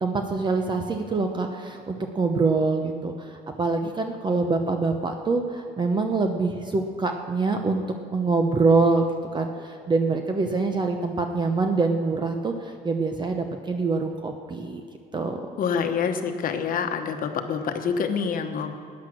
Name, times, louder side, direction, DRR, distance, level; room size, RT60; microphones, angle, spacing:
voice 1, 0.0-7.8 8.1-9.1 9.3-14.8 15.1-15.4, right 3 dB, 25° right, 5 dB, 0.8 m, -25 dB
voice 2, 15.6-18.7, left 6 dB, 55° left, 6 dB, 1.1 m, -26 dB
13.5 x 9.6 x 6.4 m, 2.4 s
cardioid pair, 110°, 17 cm